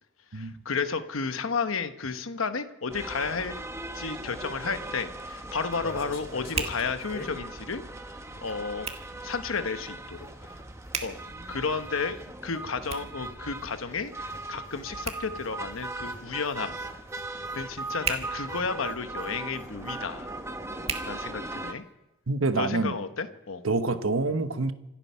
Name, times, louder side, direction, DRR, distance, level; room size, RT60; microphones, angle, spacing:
voice 1, 0.3-3.6 3.9-7.8 8.4-8.9 9.2-10.3 11.0-11.2 11.5-16.7 17.5-20.3 21.1-21.8 22.5-23.6, left 5 dB, 85° left, 9 dB, 1.1 m, -32 dB
sound 1, 2.9-21.7, right 2 dB, 15° right, 1.0 m, -39 dB
Hands, 4.3-21.9, right 5 dB, 30° right, 1.7 m, -42 dB
sound 2, 5.1-8.8 9.1-20.0 20.3-20.4 20.6-20.9, left 1 dB, 45° left, 2.2 m, -48 dB
voice 2, 22.3-23.0 23.6-24.7, right 3 dB, 85° right, 9 dB, 1.1 m, -26 dB
26.5 x 8.9 x 5.7 m, 0.96 s
head